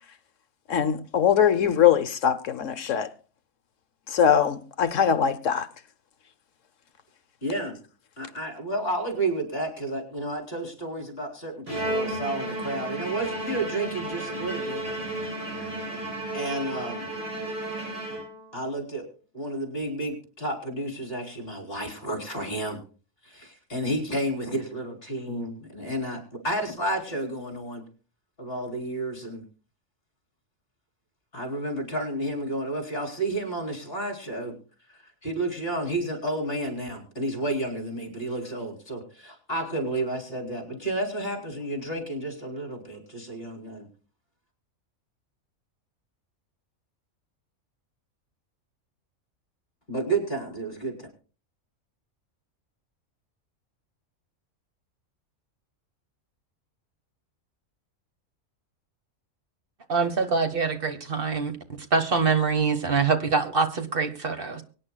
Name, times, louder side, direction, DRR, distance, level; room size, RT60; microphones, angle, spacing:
voice 1, 0.7-3.1 4.1-5.7, left 8 dB, 65° left, 1.2 m, -22 dB
voice 2, 7.4-7.8 8.2-14.8 16.3-17.1 18.5-19.0 19.3-22.8 23.2-27.8 28.4-29.4 31.3-34.5 34.9-43.9 49.9-51.1, right 1 dB, 45° left, 4.1 m, -31 dB
Bowed string instrument, 11.7-18.6, right 1 dB, 85° right, 6.9 m, -33 dB
voice 3, 59.9-61.5 61.9-64.6, right 5 dB, 45° right, 1.5 m, -24 dB
24.0 x 9.8 x 2.3 m
omnidirectional pair, 1.4 m